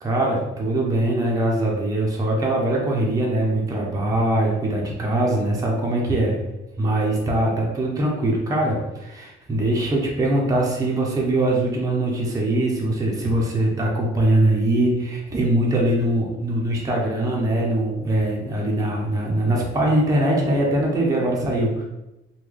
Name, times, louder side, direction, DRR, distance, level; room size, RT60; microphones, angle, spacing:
voice 1, 0.0-6.4 6.8-21.8, right 1 dB, 15° right, -3 dB, 0.5 m, -22 dB
3.1 x 2.2 x 3.6 m, 0.96 s
cardioid pair, 155°, 21 cm